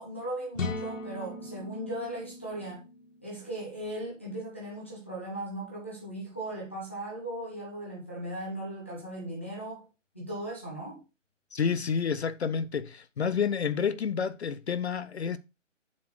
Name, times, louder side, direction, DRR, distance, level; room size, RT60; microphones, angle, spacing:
voice 1, 0.0-2.8 3.2-9.9 10.1-11.0, right 1 dB, 10° left, 0.7 m, -38 dB
sound 1, 0.6-4.3, left 3 dB, 80° left, 1.6 m, -39 dB
voice 2, 11.5-15.4, left 6 dB, 60° left, 0.5 m, -29 dB
7.2 x 4.3 x 4.6 m
hypercardioid pair, 170°, 38 cm